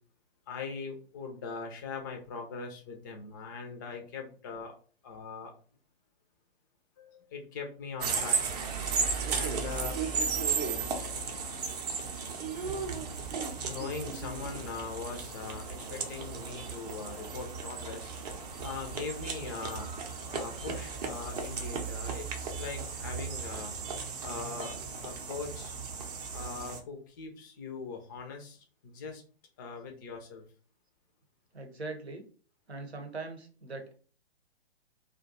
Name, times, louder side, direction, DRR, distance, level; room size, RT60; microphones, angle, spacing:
voice 1, 0.5-4.8 5.0-5.5 7.0-8.5 9.3-10.0 13.7-18.1 18.6-19.9 20.3-23.7 24.2-24.8 25.0-25.8 26.3-29.2 29.6-30.4, left 5 dB, 20° left, 3 dB, 0.4 m, -41 dB
sound 1, 8.0-26.8, right 5 dB, 40° right, 0.6 m, -35 dB
voice 2, 31.5-32.2 32.7-33.9, right 3 dB, 85° right, 5 dB, 0.9 m, -41 dB
2.5 x 2.2 x 3.9 m, 0.40 s
figure-of-eight pair, 120°, 31 cm